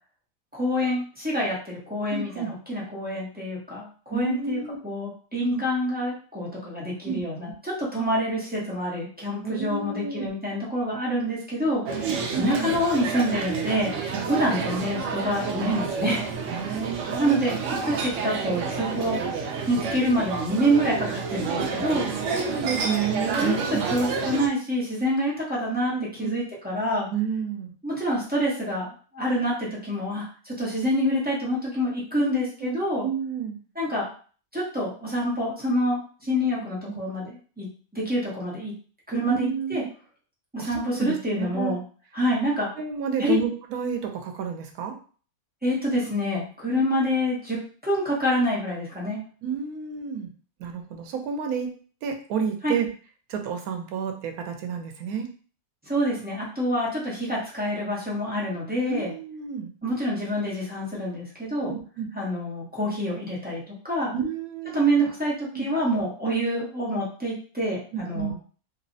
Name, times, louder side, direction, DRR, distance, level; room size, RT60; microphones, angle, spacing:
voice 1, 0.5-12.1 12.4-14.0 14.3-16.3 17.2-17.5 17.8-19.2 19.7-22.1 22.8-22.9 23.3-25.9 26.2-27.1 27.8-33.1 33.8-34.1 34.5-37.7 37.9-38.7 39.1-39.8 40.5-41.8 42.1-42.7 43.2-43.4 45.6-49.2 52.6-52.7 55.8-59.1 59.8-61.8 62.1-64.1 64.7-68.4, equal, 10° right, -7 dB, 0.5 m, -27 dB
voice 2, 2.1-2.5 4.1-4.8 5.5-5.7 7.1-7.2 9.4-10.3 12.0-12.7 14.1-14.3 16.5-17.5 22.2-23.9 25.9-26.4 27.1-27.7 32.2-32.8 33.0-33.6 36.9-37.0 39.2-39.9 40.6-41.8 42.8-45.0 49.4-50.3 50.6-51.7 52.0-52.9 53.3-55.3 58.9-59.7 61.6-62.1 64.1-65.0 65.5-66.0 67.9-68.3, right 7 dB, 90° right, 4 dB, 1.1 m, -30 dB
sound 1, 11.9-24.5, right 5 dB, 65° right, 0.8 m, -29 dB
3.1 x 2.0 x 2.6 m, 0.41 s
omnidirectional pair, 1.5 m